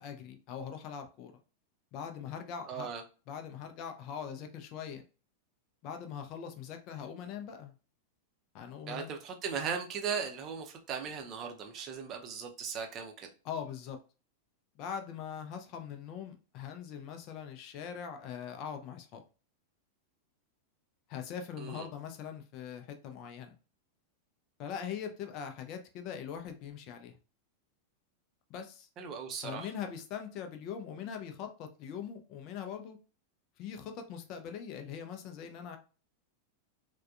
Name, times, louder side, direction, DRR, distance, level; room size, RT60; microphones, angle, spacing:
voice 1, 0.0-1.4 1.9-2.9 3.3-5.0 5.8-7.7 8.5-9.1 13.4-14.0 14.8-19.2 21.1-23.5 24.6-27.2 28.5-28.9 29.4-33.0 33.6-35.8, left 7 dB, 40° left, 0.5 m, -42 dB
voice 2, 2.6-3.0 8.9-13.3 21.6-21.9 29.0-29.7, right 6 dB, 35° right, 0.6 m, -38 dB
3.4 x 2.2 x 2.3 m
figure-of-eight pair, 90°, 0 cm